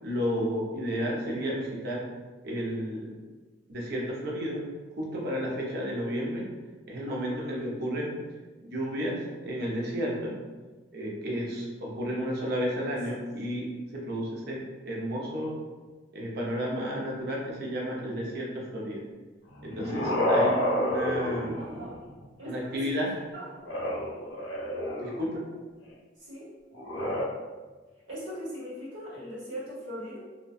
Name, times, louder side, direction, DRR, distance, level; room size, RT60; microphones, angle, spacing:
voice 1, 0.0-2.1 2.4-3.1 3.7-4.6 5.0-6.5 6.9-8.1 8.6-10.4 10.9-15.6 16.1-19.0 19.6-21.5 22.4-23.1 25.0-25.4, equal, 55° right, -3 dB, 0.6 m, -32 dB
sound 1, 19.5-22.1 23.6-25.4 26.7-27.2, left 1 dB, 75° left, 0.6 m, -29 dB
voice 2, 21.6-21.9 22.4-23.0 23.3-23.5 26.2-26.5 28.1-30.2, equal, 70° right, -7 dB, 1.0 m, -39 dB
2.6 x 2.1 x 2.3 m, 1.3 s
head